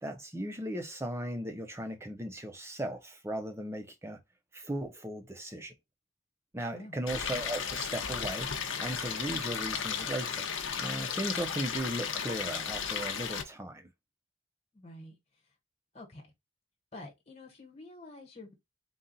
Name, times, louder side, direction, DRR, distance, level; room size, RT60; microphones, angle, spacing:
voice 1, 0.0-4.2 4.5-5.7 6.5-8.5 8.8-10.5 10.8-13.9, right 1 dB, 10° right, 0.6 m, -37 dB
voice 2, 6.6-7.0 14.7-15.1 15.9-16.3 16.9-18.5, left 2 dB, 30° left, 1.2 m, -48 dB
Stream, 7.1-13.4, left 7 dB, 65° left, 0.7 m, -34 dB
3.9 x 2.3 x 3.9 m
head